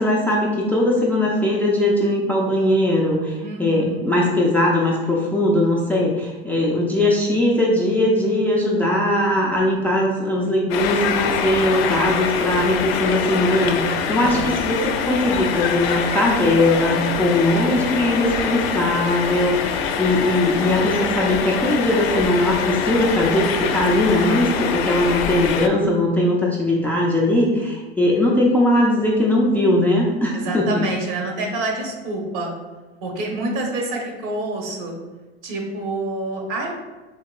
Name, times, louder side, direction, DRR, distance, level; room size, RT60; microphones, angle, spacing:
voice 1, 0.0-30.8, left 1 dB, 5° left, -3 dB, 0.3 m, -20 dB
voice 2, 3.4-4.0 14.1-14.6 24.0-24.5 30.3-32.5 33.0-34.9 35.4-36.7, right 2 dB, 65° right, 1 dB, 1.0 m, -27 dB
sound 1, 10.7-25.7, left 6 dB, 70° left, 0.5 m, -24 dB
3.7 x 2.8 x 2.3 m, 1.2 s
hypercardioid pair, 105°, 31 cm